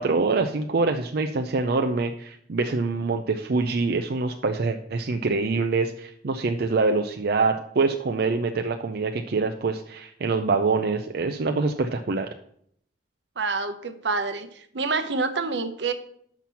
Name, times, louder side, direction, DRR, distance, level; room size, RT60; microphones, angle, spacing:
voice 1, 0.0-12.3, right 3 dB, 60° right, 6 dB, 0.5 m, -25 dB
voice 2, 13.4-15.9, right 4 dB, 85° right, 8 dB, 0.8 m, -27 dB
5.9 x 5.9 x 6.9 m, 0.66 s
head